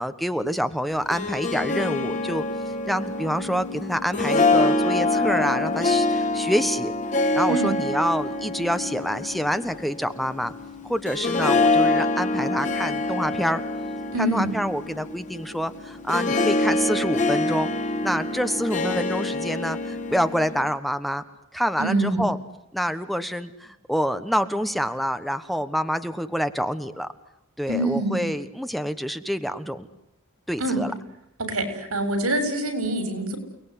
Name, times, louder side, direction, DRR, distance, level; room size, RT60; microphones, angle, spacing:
voice 1, 0.0-2.4 2.9-6.9 7.3-10.5 10.8-13.6 14.2-17.7 18.0-21.2 21.5-22.4 22.7-27.1 27.6-29.9 30.5-30.9, equal, ahead, 10 dB, 1.2 m, -27 dB
Harp, 0.9-20.7, left 2 dB, 35° left, 2.6 m, -25 dB
voice 2, 14.1-14.5 21.8-22.3 27.7-28.2 30.6-30.9 31.4-33.4, right 1 dB, 90° right, 9 dB, 7.1 m, -25 dB
29.5 x 20.0 x 10.0 m, 0.79 s
head